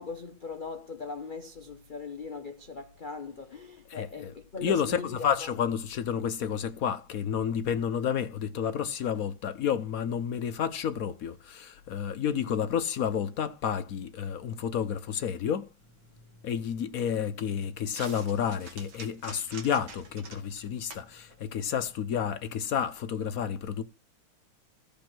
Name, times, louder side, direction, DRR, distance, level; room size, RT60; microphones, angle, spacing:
voice 1, 0.0-5.6, left 4 dB, 80° left, 0.4 m, -40 dB
voice 2, 3.9-4.3 4.6-15.7 16.4-23.8, left 8 dB, 60° left, 1.0 m, -30 dB
sound 1, 15.8-22.7, right 3 dB, 70° right, 3.0 m, -50 dB
15.5 x 5.3 x 6.0 m
omnidirectional pair, 2.3 m